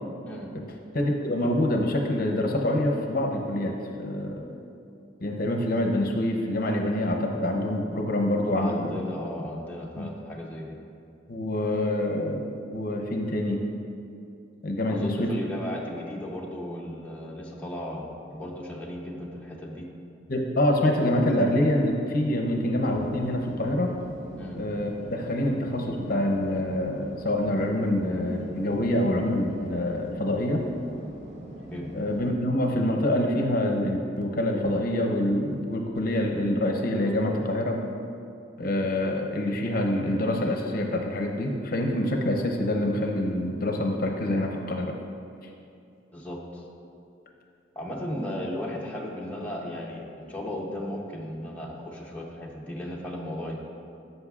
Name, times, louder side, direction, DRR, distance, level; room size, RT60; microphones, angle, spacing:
voice 1, 0.9-3.7 4.0-4.5 5.2-8.8 10.0-10.1 11.3-13.6 14.6-15.3 20.3-23.9 24.6-30.6 31.9-37.8 38.6-45.0, left 1 dB, 50° left, 2 dB, 0.7 m, -26 dB
voice 2, 8.5-10.8 14.9-19.9 24.4-24.6 31.7-31.9 46.1-46.6 47.8-53.6, left 1 dB, 10° left, -3 dB, 0.7 m, -35 dB
sound 1, 22.8-32.3, equal, 35° right, 1.1 m, -42 dB
13.5 x 5.5 x 2.4 m, 2.6 s
head